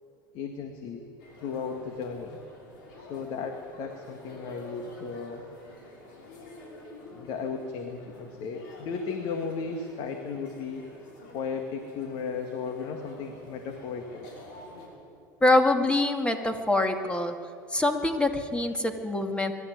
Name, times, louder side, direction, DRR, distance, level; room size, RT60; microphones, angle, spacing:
voice 1, 0.3-1.0 1.4-2.4 3.0-5.4 7.1-10.9 11.3-14.3, left 5 dB, 60° left, 4 dB, 1.9 m, -35 dB
sound 1, 1.2-14.9, left 1 dB, 75° left, 6.3 m, -48 dB
voice 2, 15.4-17.4 17.7-19.5, left 2 dB, 10° left, 5 dB, 2.3 m, -24 dB
23.0 x 13.0 x 9.5 m, 2.4 s
hypercardioid pair, 90°, 11 cm